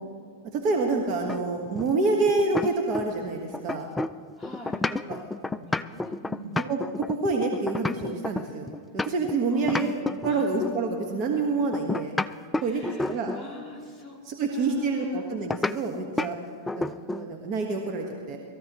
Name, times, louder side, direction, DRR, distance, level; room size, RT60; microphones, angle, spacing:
voice 1, 0.5-3.9 4.9-5.2 6.5-8.7 8.9-9.9 10.2-12.1 12.6-12.8 13.1-13.3 14.2-16.4 16.7-18.4, right 3 dB, 45° right, 1 dB, 1.4 m, -27 dB
sound 1, 1.3-3.3 3.5-9.4 9.7-10.8 11.7-13.5 15.5-15.8 16.2-16.4 16.7-17.3, left 2 dB, 10° left, 0.3 m, -30 dB
voice 2, 4.4-4.8 5.5-6.6 9.5-10.5 12.5-15.3, right 1 dB, 10° right, -3 dB, 3.3 m, -44 dB
22.5 x 14.0 x 3.1 m, 2.1 s
hypercardioid pair, 115°, 0 cm